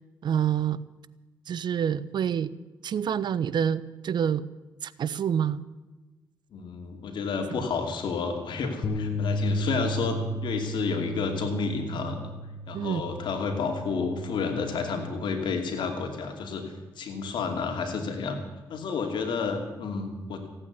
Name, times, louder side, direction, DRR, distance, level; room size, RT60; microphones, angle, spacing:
voice 1, 0.2-0.8 1.5-2.5 2.8-4.4 4.8-5.6 7.5-7.6 12.7-13.0, right 8 dB, 65° right, 18 dB, 0.7 m, -27 dB
voice 2, 6.5-12.3 12.7-16.6 17.0-18.4 18.7-20.4, left 5 dB, 75° left, 5 dB, 2.7 m, -30 dB
sound 1, 8.8-15.1, equal, 55° left, 1.7 m, -34 dB
16.0 x 9.0 x 9.5 m, 1.2 s
supercardioid pair, 60°, 8 cm